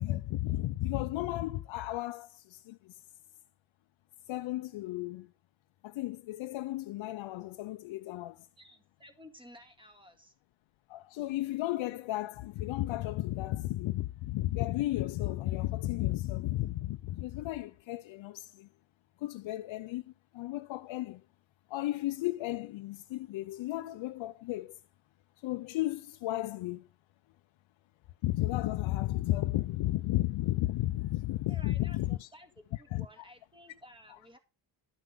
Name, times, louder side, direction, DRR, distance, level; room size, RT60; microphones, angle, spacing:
voice 1, 0.0-3.0 4.3-5.3 5.8-8.5 10.9-18.7 19.2-20.0 20.3-21.2 21.7-24.7 25.4-26.8 28.2-32.3 32.7-33.1, left 16 dB, 80° left, 0.6 m, -33 dB
voice 2, 8.6-10.3 31.5-32.5 32.8-34.4, equal, 10° right, 1.9 m, -54 dB
12.5 x 6.0 x 5.1 m
cardioid pair, 130°, 46 cm